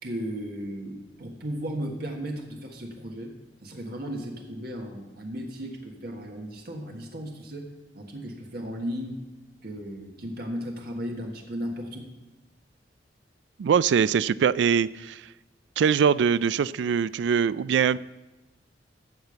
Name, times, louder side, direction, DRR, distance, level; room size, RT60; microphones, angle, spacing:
voice 1, 0.0-3.3 3.6-7.7 7.9-9.2 9.6-12.1, equal, 60° right, 1 dB, 1.5 m, -35 dB
voice 2, 13.6-15.2 15.8-18.0, right 7 dB, 80° right, 19 dB, 0.3 m, -22 dB
14.0 x 5.2 x 8.0 m, 1.1 s
head